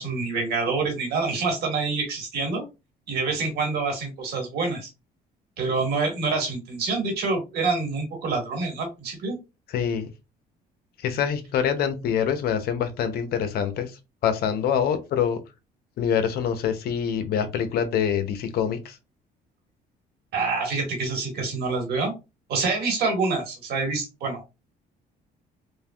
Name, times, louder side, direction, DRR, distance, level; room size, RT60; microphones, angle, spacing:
voice 1, 0.0-2.6 3.1-4.9 5.6-9.4 20.3-22.1 22.5-24.5, right 4 dB, 70° right, 1.6 m, -26 dB
voice 2, 9.7-10.1 11.0-15.4 16.0-19.0, left 8 dB, 65° left, 0.6 m, -25 dB
3.3 x 2.4 x 2.3 m
cardioid pair, 110°, 17 cm